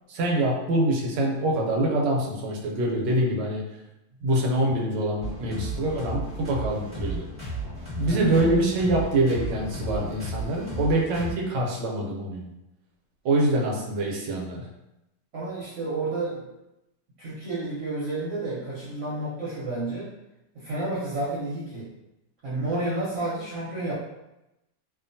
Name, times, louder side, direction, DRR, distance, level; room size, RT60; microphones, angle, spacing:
voice 1, 0.1-3.6 4.2-7.3 8.0-12.5 13.2-14.7, right 1 dB, 80° right, -1 dB, 1.2 m, -25 dB
sound 1, 5.2-11.3, right 2 dB, 5° left, 1.1 m, -34 dB
voice 2, 15.3-16.5 17.2-20.1 20.5-21.9 22.4-23.9, right 2 dB, 55° right, -8 dB, 0.9 m, -30 dB
2.8 x 2.4 x 2.6 m, 0.92 s
omnidirectional pair, 1.9 m